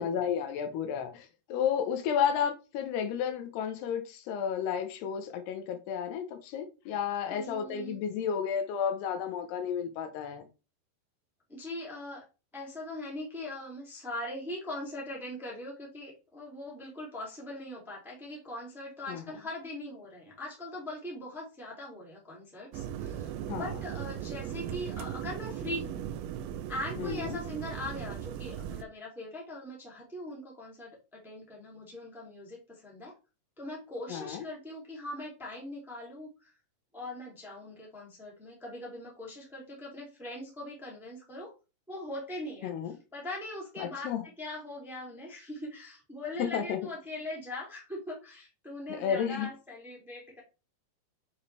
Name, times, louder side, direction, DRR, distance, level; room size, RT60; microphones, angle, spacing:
voice 1, 0.0-10.5 19.1-19.2 23.5-23.8 27.0-27.4 34.1-34.4 42.6-42.9 43.8-44.3 46.4-46.8 48.9-49.5, left 8 dB, 85° left, 3.0 m, -32 dB
voice 2, 7.3-8.0 11.5-12.2 12.5-26.0 26.7-33.1 33.6-36.5 36.9-41.5 41.9-42.7 43.1-50.4, left 1 dB, ahead, 1.5 m, -41 dB
sound 1, 22.7-28.8, right 10 dB, 80° right, 2.4 m, -38 dB
6.6 x 5.5 x 3.3 m
omnidirectional pair, 4.6 m